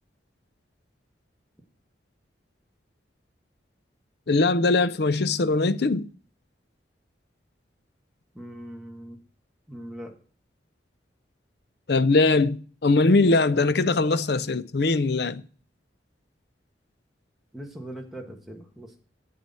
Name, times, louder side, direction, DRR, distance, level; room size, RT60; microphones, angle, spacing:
voice 1, 4.3-6.1 11.9-15.4, left 3 dB, 55° left, 0.6 m, -21 dB
voice 2, 8.3-9.2 9.7-10.1 17.5-19.0, right 1 dB, ahead, 1.7 m, -40 dB
9.3 x 8.6 x 4.3 m
head